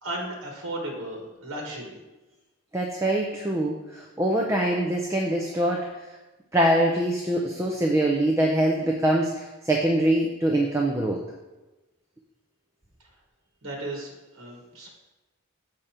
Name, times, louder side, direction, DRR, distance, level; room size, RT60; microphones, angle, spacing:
voice 1, 0.0-2.0 13.6-14.9, right 1 dB, 85° right, 0 dB, 1.4 m, -35 dB
voice 2, 2.7-5.9 6.5-11.2, right 1 dB, 15° right, 0 dB, 0.5 m, -24 dB
7.5 x 5.1 x 4.3 m, 1.1 s
head